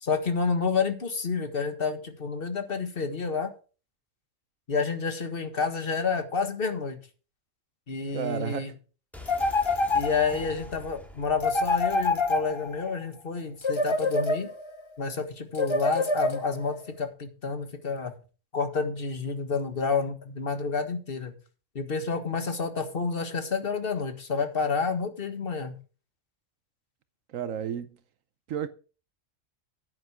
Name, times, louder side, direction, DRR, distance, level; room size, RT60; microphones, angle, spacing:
voice 1, 0.0-3.5 4.7-7.0 7.9-8.7 9.9-14.5 15.0-18.1 18.5-21.3 21.8-25.8, left 5 dB, 45° left, 1.7 m, -29 dB
voice 2, 8.1-8.7 27.3-28.0 28.5-28.7, right 9 dB, 80° right, 1.1 m, -32 dB
sound 1, 9.1-12.9 13.2-13.3, left 1 dB, ahead, 2.2 m, -47 dB
sound 2, 9.3-10.5 11.4-12.9 13.6-14.8 15.5-16.7, left 2 dB, 25° left, 0.8 m, -26 dB
9.6 x 9.6 x 4.8 m
omnidirectional pair, 1.4 m